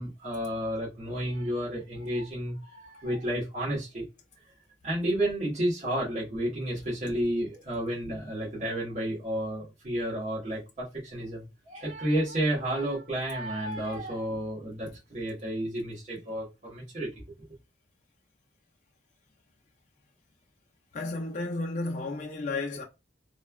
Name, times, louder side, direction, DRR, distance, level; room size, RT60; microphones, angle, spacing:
voice 1, 0.0-4.0 4.8-17.1, right 1 dB, 40° right, 1.1 m, -31 dB
voice 2, 20.9-22.8, left 2 dB, 40° left, 0.4 m, -32 dB
3.1 x 2.2 x 2.2 m
head